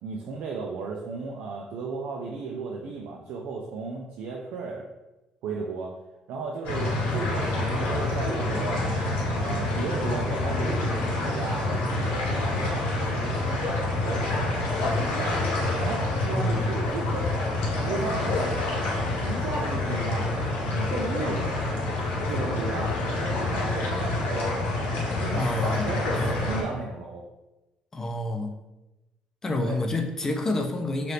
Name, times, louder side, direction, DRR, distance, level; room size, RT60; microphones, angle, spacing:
voice 1, 0.0-4.9 5.4-5.9 6.3-8.8 9.3-15.5 15.8-17.3 17.8-18.5 19.2-20.3 20.7-21.4 22.3-24.5 25.2-27.2 29.5-29.8, right 4 dB, 70° right, -1 dB, 0.4 m, -35 dB
sound 1, 6.6-26.6, left 2 dB, 85° left, 1.0 m, -27 dB
voice 2, 16.3-16.7 25.3-26.4 27.9-28.5 29.4-31.1, left 2 dB, 20° left, 4 dB, 0.4 m, -28 dB
2.8 x 2.4 x 3.3 m, 0.99 s
cardioid pair, 125°, 3 cm